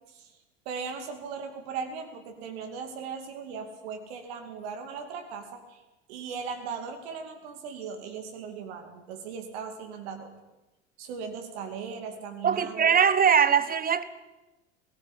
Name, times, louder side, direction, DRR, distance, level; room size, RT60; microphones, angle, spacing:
voice 1, 0.7-5.8 6.1-10.3 11.0-12.9, right 6 dB, 60° right, 2.5 m, -38 dB
voice 2, 12.4-14.0, right 7 dB, 25° right, 1.4 m, -21 dB
19.5 x 16.5 x 9.2 m
figure-of-eight pair, 70°, 35 cm